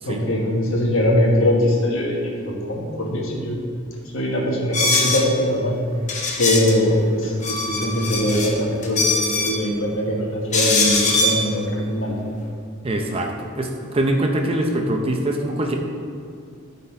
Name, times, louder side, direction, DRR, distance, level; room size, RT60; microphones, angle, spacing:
voice 1, 0.0-3.6 4.1-5.7 6.4-12.1, left 1 dB, 65° left, -2 dB, 1.5 m, -21 dB
sound 1, 4.7-5.3 6.1-6.7 7.2-8.5 8.8-9.6 10.5-11.4, left 3 dB, 35° left, 0.9 m, -21 dB
voice 2, 12.8-15.8, right 1 dB, 25° right, 2 dB, 0.6 m, -23 dB
12.5 x 4.2 x 4.4 m, 2.4 s
head